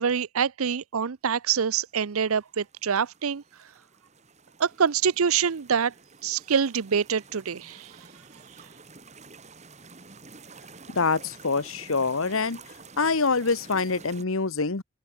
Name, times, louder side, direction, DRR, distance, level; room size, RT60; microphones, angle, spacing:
voice 1, 0.0-3.4 4.6-5.9 6.2-7.9, right 7 dB, 80° right, 0.6 m, -25 dB
sound 1, 2.1-14.2, right 4 dB, 30° right, 2.6 m, -49 dB
voice 2, 10.9-12.6 13.0-14.8, left 4 dB, 70° left, 1.3 m, -25 dB
open air
head